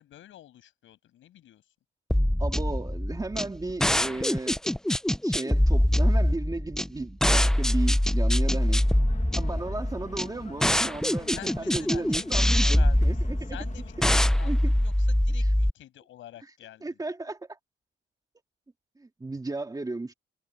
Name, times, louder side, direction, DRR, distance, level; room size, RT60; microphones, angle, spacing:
voice 1, 0.0-1.6 11.3-13.1 13.5-17.0, left 12 dB, 80° left, 6.6 m, -47 dB
sound 1, 2.1-15.7, left 1 dB, 5° left, 0.5 m, -24 dB
voice 2, 2.4-4.6 5.2-8.8 9.4-13.6 14.4-14.7 16.8-17.6 19.0-20.1, right 2 dB, 20° right, 2.3 m, -34 dB
sound 2, 8.4-14.1, left 5 dB, 35° left, 1.8 m, -46 dB
cardioid pair, 90°, 20 cm